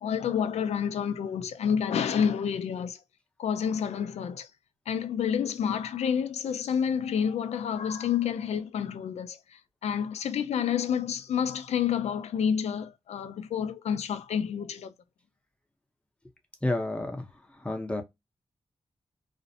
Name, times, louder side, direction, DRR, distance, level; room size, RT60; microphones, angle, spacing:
voice 1, 0.0-3.0 3.4-4.5 4.9-14.9, left 8 dB, 90° left, 0.4 m, -29 dB
voice 2, 16.6-17.2 17.6-18.0, left 1 dB, 10° left, 0.7 m, -30 dB
2.5 x 2.0 x 2.5 m
wide cardioid pair, 90°, 11 cm